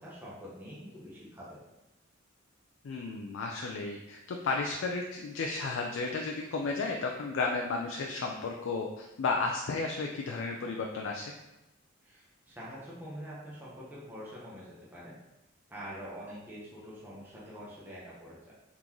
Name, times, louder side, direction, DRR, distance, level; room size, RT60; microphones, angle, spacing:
voice 1, 0.0-1.6 12.0-15.2 15.7-18.5, equal, 10° right, -7 dB, 0.9 m, -45 dB
voice 2, 2.8-11.3, left 3 dB, 70° left, 1 dB, 0.4 m, -33 dB
3.8 x 3.6 x 3.0 m, 0.96 s
head